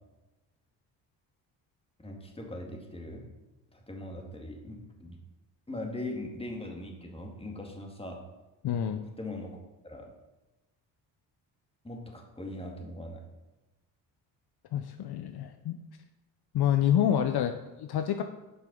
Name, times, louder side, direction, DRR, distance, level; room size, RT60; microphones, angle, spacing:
voice 1, 2.0-3.3 3.7-5.2 5.7-8.2 9.2-9.6 9.8-10.1 11.8-13.2, left 1 dB, 15° left, 2 dB, 2.0 m, -40 dB
voice 2, 8.6-9.1 14.7-15.8 16.5-18.2, left 10 dB, 60° left, 8 dB, 0.7 m, -28 dB
7.9 x 5.6 x 5.4 m, 1.1 s
supercardioid pair, 70°, 44 cm